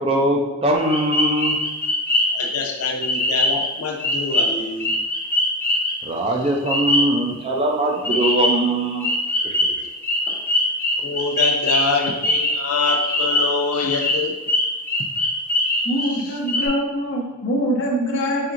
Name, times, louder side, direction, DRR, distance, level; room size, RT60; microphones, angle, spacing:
voice 1, 0.0-1.6 6.0-9.1 9.4-9.7, right 1 dB, 25° right, 0 dB, 0.4 m, -21 dB
sound 1, 0.8-2.5 3.0-3.7 4.0-6.0 6.7-7.2 8.0-8.7 9.0-13.6 13.9-16.2 16.5-16.7, left 1 dB, 10° left, 0.7 m, -22 dB
voice 2, 2.3-4.9 11.0-14.4, left 4 dB, 90° left, 2 dB, 0.6 m, -24 dB
voice 3, 15.8-18.5, equal, 50° left, -3 dB, 0.9 m, -23 dB
4.3 x 3.7 x 2.5 m, 1.2 s
head